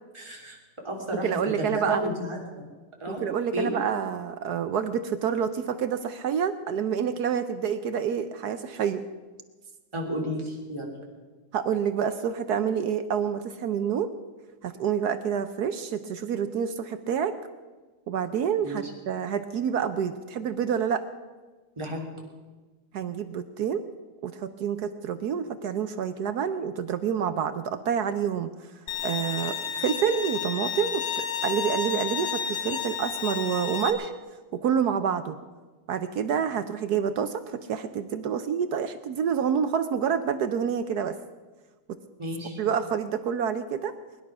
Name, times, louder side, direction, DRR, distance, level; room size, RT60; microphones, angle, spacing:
voice 1, 0.1-0.6 0.8-1.3 1.6-2.6 3.0-3.2 3.5-3.7 9.9-10.9 18.6-18.8 21.8-22.1 42.2-42.6, right 1 dB, 15° right, -1 dB, 2.9 m, -32 dB
voice 2, 1.2-2.0 3.1-9.0 11.5-14.1 14.6-17.3 18.1-21.1 22.9-23.8 24.2-28.7 29.0-34.1 34.5-35.4 35.9-41.2 42.6-44.0, right 7 dB, 65° right, 11 dB, 1.0 m, -28 dB
Bowed string instrument, 28.9-33.9, left 7 dB, 85° left, 2.2 m, -31 dB
21.5 x 11.0 x 6.0 m, 1.3 s
omnidirectional pair, 2.3 m